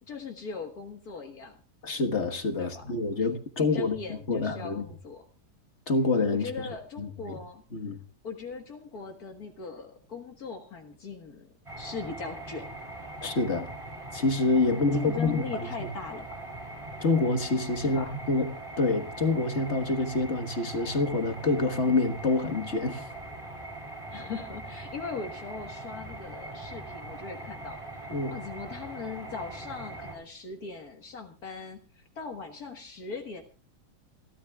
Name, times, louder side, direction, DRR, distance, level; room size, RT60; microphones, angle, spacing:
voice 1, 0.1-1.5 2.6-2.8 3.2-3.3 3.6-5.2 6.3-7.6 8.2-11.5 11.8-12.7 14.7-16.3 17.8-18.1 24.1-33.4, left 4 dB, 65° left, 2.0 m, -40 dB
voice 2, 1.8-3.9 4.3-4.8 5.9-6.5 7.0-7.4 7.7-8.0 13.2-13.7 14.1-15.9 17.0-18.5 18.8-23.1 28.1-28.4, left 3 dB, 45° left, 1.6 m, -27 dB
sound 1, 11.7-30.2, right 2 dB, 20° right, 6.8 m, -41 dB
28.0 x 13.0 x 2.3 m
omnidirectional pair, 1.8 m